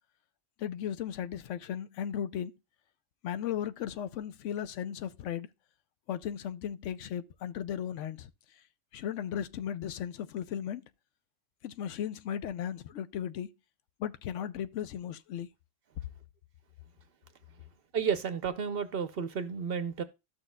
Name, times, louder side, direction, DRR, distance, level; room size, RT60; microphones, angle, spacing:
voice 1, 0.6-2.5 3.2-5.5 6.1-8.3 8.9-10.8 11.6-13.5 14.0-15.5, left 9 dB, 75° left, 0.9 m, -36 dB
voice 2, 17.9-20.0, right 6 dB, 60° right, 0.8 m, -32 dB
13.5 x 6.1 x 2.2 m
omnidirectional pair, 1.3 m